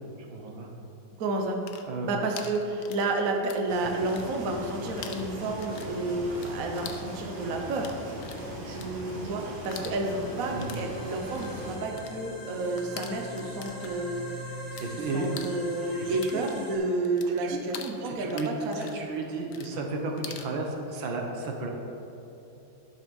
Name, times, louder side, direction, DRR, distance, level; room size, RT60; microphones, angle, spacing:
voice 1, 0.3-0.7 1.9-2.1 10.5-10.8 14.8-15.4 16.0-16.4 17.3-17.6 18.0-18.5 18.7-21.7, right 3 dB, 75° right, 2 dB, 1.8 m, -33 dB
voice 2, 1.2-1.6 2.0-7.9 8.7-14.2 15.1-19.0, right 2 dB, 55° right, 2 dB, 1.1 m, -30 dB
sound 1, 1.6-3.7 4.0-4.7 5.0-14.9 15.2-20.5, left 7 dB, 75° left, 0.7 m, -45 dB
sound 2, 3.7-11.8, equal, 90° right, 2.9 m, -39 dB
sound 3, 9.9-16.8, equal, 10° left, 1.4 m, -42 dB
11.0 x 6.2 x 5.3 m, 3.0 s
omnidirectional pair, 2.2 m